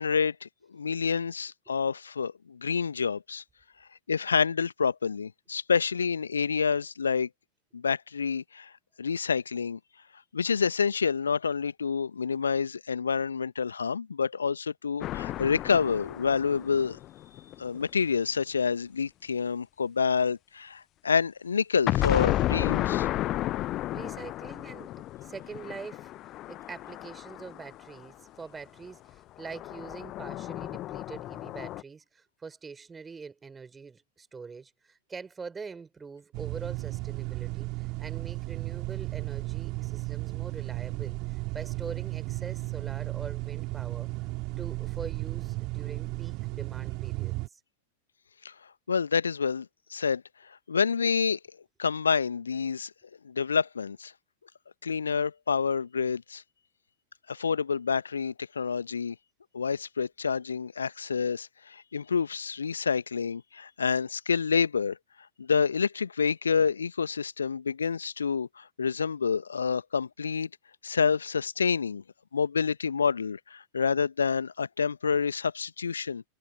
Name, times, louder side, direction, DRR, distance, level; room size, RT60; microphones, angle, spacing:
voice 1, 0.0-3.4 4.1-7.3 7.7-8.7 9.0-9.8 10.3-17.0 17.6-23.1 48.4-48.5 48.9-50.2 50.7-51.4 51.8-52.9 53.2-54.1 54.8-56.4 57.3-59.1 59.5-65.0 65.4-70.5 70.8-72.0 72.3-76.2, left 6 dB, 75° left, 1.3 m, -28 dB
sound 1, 15.0-17.8 21.9-28.1 29.4-31.8, left 15 dB, 35° left, 0.7 m, -32 dB
voice 2, 23.9-24.9 25.2-44.1 44.6-47.6, right 5 dB, 15° right, 5.9 m, -44 dB
sound 2, 36.3-47.5, right 23 dB, 40° right, 3.3 m, -34 dB
figure-of-eight pair, 90°, 0 cm